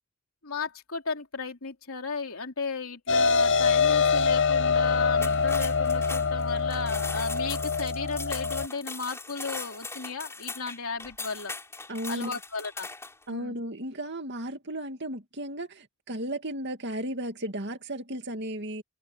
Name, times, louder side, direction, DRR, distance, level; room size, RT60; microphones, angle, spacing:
voice 1, 0.4-11.5 12.1-12.9 13.3-13.6, left 4 dB, 75° left, 3.2 m, -35 dB
sound 1, 3.1-8.7, left 5 dB, 60° left, 0.8 m, -24 dB
sound 2, 5.1-13.2, left 3 dB, 10° left, 6.1 m, -39 dB
voice 2, 11.9-12.4 13.3-18.8, right 1 dB, 50° right, 2.5 m, -34 dB
head